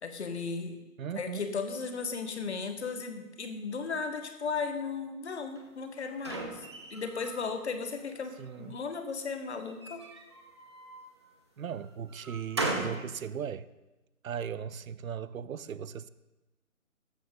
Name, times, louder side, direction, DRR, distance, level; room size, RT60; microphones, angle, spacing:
voice 1, 0.0-0.8 1.1-10.0, left 5 dB, 50° left, 1.2 m, -36 dB
voice 2, 1.0-1.5 8.4-8.8 11.6-13.7 14.2-16.1, right 8 dB, 70° right, 0.6 m, -38 dB
sound 1, 5.6-7.5 7.9-8.7 9.7-11.1 11.7-13.0, right 2 dB, 20° right, 0.7 m, -38 dB
14.5 x 6.6 x 3.7 m
figure-of-eight pair, 150°, 43 cm